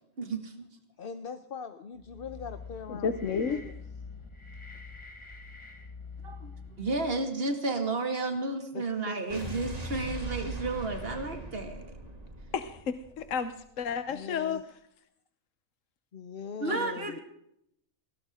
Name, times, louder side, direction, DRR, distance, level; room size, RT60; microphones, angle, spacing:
voice 1, 0.2-0.5 6.8-11.9 16.6-17.2, right 3 dB, 45° right, 5 dB, 2.5 m, -32 dB
voice 2, 1.0-3.2 3.5-3.7 8.7-9.6 14.1-14.6 16.1-17.2, left 6 dB, 45° left, 9 dB, 0.9 m, -41 dB
sound 1, 2.0-7.3, left 4 dB, 20° left, 1.3 m, -46 dB
voice 3, 2.9-3.6 12.5-14.6 16.7-16.8, left 6 dB, 70° left, 9 dB, 1.3 m, -31 dB
Explosion, 9.3-13.6, right 2 dB, 30° right, 2.6 m, -40 dB
20.5 x 17.0 x 3.7 m, 0.74 s
omnidirectional pair, 1.4 m